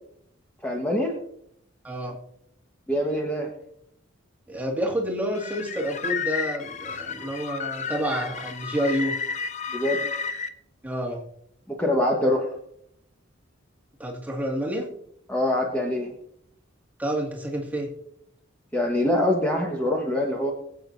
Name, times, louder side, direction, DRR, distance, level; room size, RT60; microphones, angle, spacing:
voice 1, 0.6-1.1 2.9-3.5 9.7-10.0 11.7-12.5 15.3-16.1 18.7-20.5, left 1 dB, 10° left, -1 dB, 1.3 m, -24 dB
voice 2, 1.8-2.2 4.5-9.1 10.8-11.2 14.0-14.9 17.0-17.9, equal, 10° right, -1 dB, 2.0 m, -29 dB
sound 1, 5.3-10.5, left 6 dB, 35° left, 0.7 m, -32 dB
22.5 x 8.4 x 2.7 m, 0.72 s
head